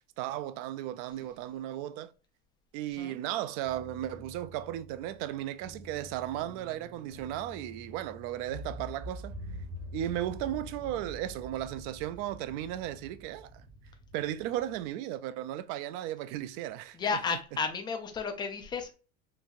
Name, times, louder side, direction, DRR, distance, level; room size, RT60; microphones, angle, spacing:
voice 1, 0.0-2.1 2.7-9.3 9.9-13.7 14.1-17.0 17.3-17.4, right 13 dB, 50° right, 0.4 m, -35 dB
sound 1, 3.6-14.8, equal, 30° right, 0.9 m, -46 dB
voice 2, 16.9-18.9, left 5 dB, 10° left, 0.3 m, -33 dB
4.0 x 2.6 x 2.4 m
supercardioid pair, 125°, 42 cm